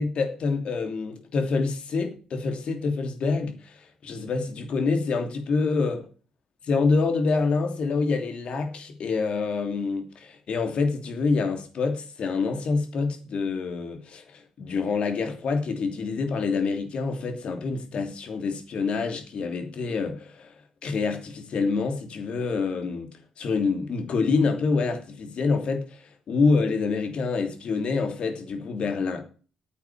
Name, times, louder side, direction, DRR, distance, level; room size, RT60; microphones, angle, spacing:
voice 1, 0.0-3.8 4.0-6.0 6.7-20.5 20.8-29.2, left 4 dB, 60° left, 2.9 m, -26 dB
9.3 x 7.3 x 8.6 m
supercardioid pair, 65°, 2 cm